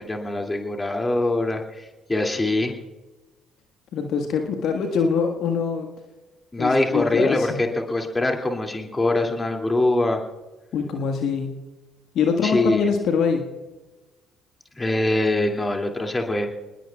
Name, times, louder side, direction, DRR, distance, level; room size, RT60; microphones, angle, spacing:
voice 1, 0.0-2.7 6.5-10.2 12.4-12.9 14.8-16.5, left 2 dB, 20° left, 2 dB, 2.6 m, -23 dB
voice 2, 3.9-5.9 6.6-7.5 10.7-11.6 12.1-13.5, left 6 dB, 55° left, 4 dB, 1.6 m, -23 dB
27.5 x 20.5 x 2.4 m, 1.2 s
figure-of-eight pair, 50°, 0 cm